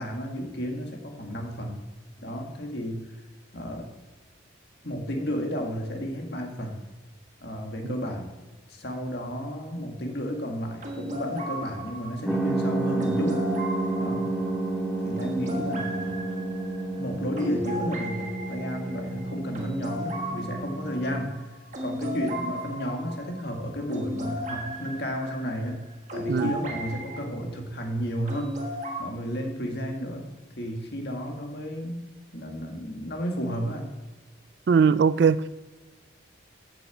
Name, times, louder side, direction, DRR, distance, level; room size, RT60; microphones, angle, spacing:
voice 1, 0.0-1.8 2.2-3.0 3.5-3.9 4.8-6.8 7.4-8.3 8.7-13.4 14.0-14.3 15.0-16.3 17.0-21.5 21.8-25.8 26.1-28.6 29.0-30.3 30.6-32.0 32.3-33.9, equal, 55° left, 1.8 m, -32 dB
sound 1, 10.8-27.2 28.3-29.0, equal, 40° right, 1.5 m, -36 dB
sound 2, 12.3-21.3, right 2 dB, 5° right, 0.8 m, -30 dB
voice 2, 34.7-35.5, right 6 dB, 55° right, 0.3 m, -20 dB
8.4 x 6.0 x 7.2 m
head